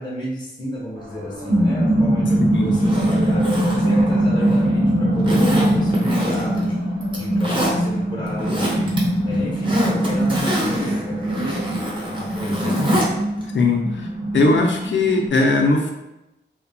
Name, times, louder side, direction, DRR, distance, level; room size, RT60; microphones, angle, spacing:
voice 1, 0.0-13.2, left 1 dB, 20° left, -5 dB, 0.5 m, -32 dB
sound 1, 1.0-15.3, right 1 dB, 65° right, 0.9 m, -21 dB
Zipper (clothing), 2.7-4.7 5.2-6.6 7.0-7.7 8.2-9.0 9.3-13.1 13.4-13.5, equal, 25° right, 0.6 m, -25 dB
voice 2, 13.5-14.1 14.3-15.9, left 3 dB, 70° left, 2 dB, 0.5 m, -19 dB
2.7 x 2.1 x 2.5 m, 0.93 s
wide cardioid pair, 100°, 20 cm